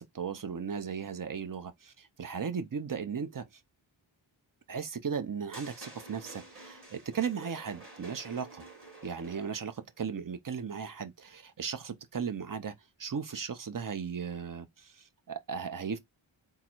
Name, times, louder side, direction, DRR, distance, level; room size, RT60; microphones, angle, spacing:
voice 1, 0.0-3.5 4.7-8.6 9.0-12.7 13.0-16.0, right 6 dB, 45° right, 0.6 m, -36 dB
sound 1, 5.5-9.8, right 2 dB, 25° right, 1.6 m, -50 dB
3.8 x 2.1 x 4.4 m
wide cardioid pair, 75°, 49 cm